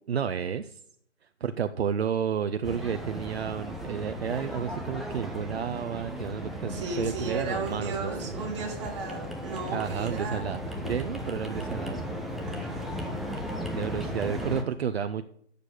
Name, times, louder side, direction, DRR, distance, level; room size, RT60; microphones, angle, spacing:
voice 1, 0.1-0.8 1.4-8.5 9.7-12.0 13.7-15.2, right 7 dB, 60° right, 10 dB, 0.6 m, -31 dB
sound 1, 2.6-14.6, equal, ahead, 0.3 m, -36 dB
voice 2, 6.7-10.4 12.5-13.1, right 3 dB, 25° right, -1 dB, 2.3 m, -35 dB
9.0 x 6.7 x 6.5 m, 0.65 s
hypercardioid pair, 175°, 35 cm